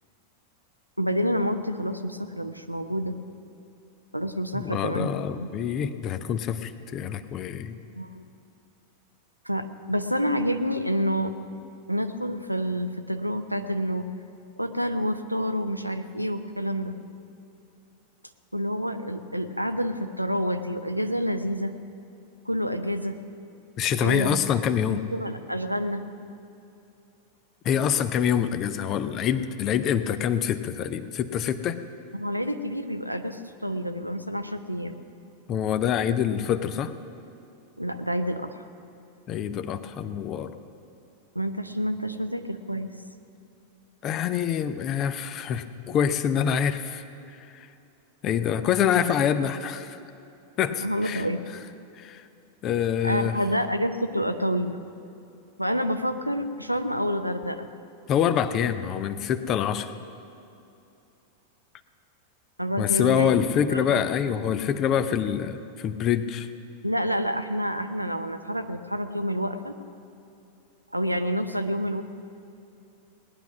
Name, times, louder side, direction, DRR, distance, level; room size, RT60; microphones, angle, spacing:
voice 1, 1.0-3.2 4.1-5.1 5.4-5.5 8.0-8.2 9.4-11.3 11.9-14.1 14.6-16.9 18.5-21.7 22.5-23.2 24.0-24.4 25.1-26.0 32.1-35.0 37.8-38.6 41.3-42.9 50.8-51.4 53.0-54.8 55.6-57.7 62.6-63.3 63.7-64.1 66.8-69.7 70.9-72.0, equal, 90° right, 9 dB, 0.7 m, -28 dB
voice 2, 4.5-7.8 23.8-25.0 27.6-31.8 35.5-36.9 39.3-40.5 44.0-47.0 48.2-50.0 50.6-51.2 52.0-52.2 52.6-53.3 58.1-59.9 62.8-66.5, left 8 dB, 35° left, 12 dB, 0.7 m, -26 dB
18.5 x 10.5 x 6.0 m, 2.8 s
figure-of-eight pair, 90°, 0 cm